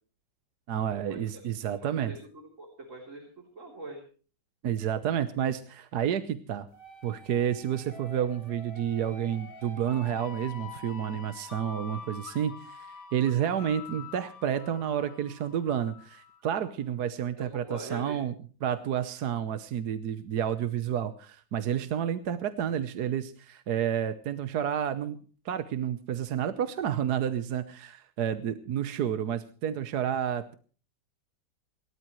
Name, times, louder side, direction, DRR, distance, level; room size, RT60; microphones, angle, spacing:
voice 1, 0.7-2.1 4.6-6.7 7.0-18.3 18.6-25.2 25.4-30.5, right 9 dB, 65° right, 11 dB, 1.4 m, -30 dB
voice 2, 1.8-2.2 2.6-3.2 3.6-4.0 17.4-18.2, right 2 dB, 45° right, 0 dB, 3.9 m, -41 dB
sound 1, 6.7-16.4, left 4 dB, 65° left, 3.8 m, -46 dB
28.5 x 13.0 x 3.1 m, 0.40 s
omnidirectional pair, 1.9 m